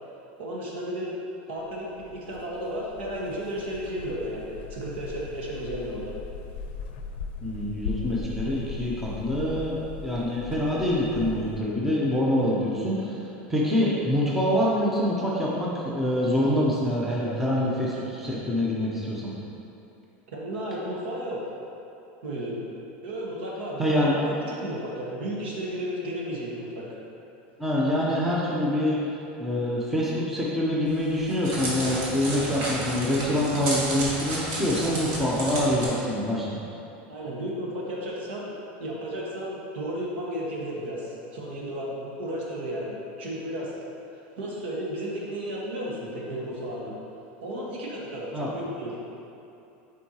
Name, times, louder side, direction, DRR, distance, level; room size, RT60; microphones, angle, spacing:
voice 1, 0.4-1.1 1.5-6.1 20.3-21.4 22.2-22.6 23.0-26.9 37.1-38.5 38.8-43.7 44.1-46.9 47.4-48.9, equal, 85° right, -4 dB, 1.4 m, -33 dB
sound 1, 1.6-11.6, left 4 dB, 75° left, 0.5 m, -39 dB
voice 2, 7.4-13.1 13.5-19.3 23.8-24.1 27.6-29.0 29.4-36.5 48.3-48.5, left 1 dB, 5° right, -6 dB, 0.6 m, -25 dB
Crackle, 30.9-35.9, right 1 dB, 50° right, 1.5 m, -32 dB
7.6 x 4.6 x 2.9 m, 2.8 s
supercardioid pair, 165°, 6 cm